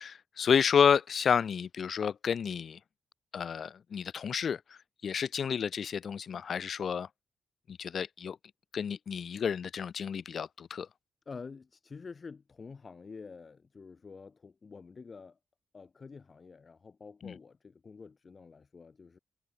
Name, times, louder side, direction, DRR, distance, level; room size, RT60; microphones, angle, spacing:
voice 1, 0.0-2.8 3.3-7.1 7.7-8.4 8.7-10.9 17.2-17.3, left 7 dB, 55° left, 2.0 m, -30 dB
voice 2, 11.3-15.4 15.7-19.2, left 5 dB, 40° left, 3.7 m, -48 dB
cardioid pair, 90°, 0 cm